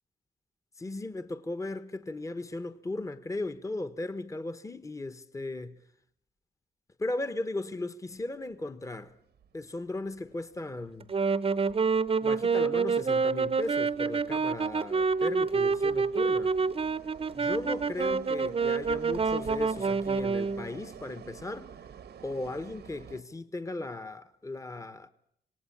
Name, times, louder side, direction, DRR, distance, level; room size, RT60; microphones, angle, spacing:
voice 1, 0.8-5.8 7.0-9.1 9.5-11.1 12.2-16.5 17.3-21.7 22.2-25.1, left 2 dB, 20° left, 1.1 m, -36 dB
sound 1, 8.1-23.2, right 8 dB, 90° right, 1.6 m, -50 dB
Wind instrument woodwind instrument, 11.0-20.7, right 5 dB, 35° right, 0.9 m, -27 dB
26.0 x 19.0 x 8.6 m
wide cardioid pair, 115°, 17 cm